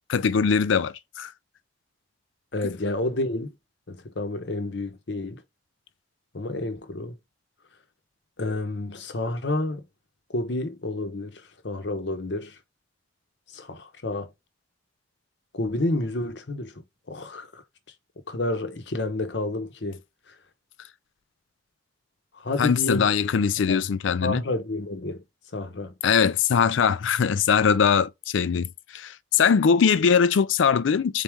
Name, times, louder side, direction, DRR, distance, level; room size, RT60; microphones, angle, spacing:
voice 1, 0.1-1.3 22.6-24.4 26.0-31.2, left 6 dB, 85° left, 0.4 m, -21 dB
voice 2, 2.5-3.5 3.9-5.4 6.3-7.1 8.4-9.8 10.3-12.5 13.5-14.3 15.5-17.6 18.3-20.0 22.4-23.1 23.7-23.8 24.2-25.2 25.5-25.9, left 2 dB, 65° left, 0.9 m, -30 dB
4.1 x 3.5 x 3.1 m
head